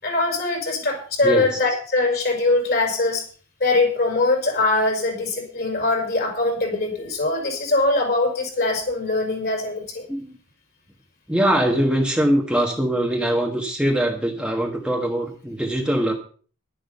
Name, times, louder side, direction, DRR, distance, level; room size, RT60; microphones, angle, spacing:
voice 1, 0.0-3.2 3.6-10.0, left 2 dB, 50° left, 2 dB, 5.2 m, -22 dB
voice 2, 1.2-1.6 10.1-10.4 11.3-16.1, right 1 dB, 5° right, 1 dB, 1.4 m, -22 dB
11.5 x 10.5 x 5.5 m, 0.42 s
head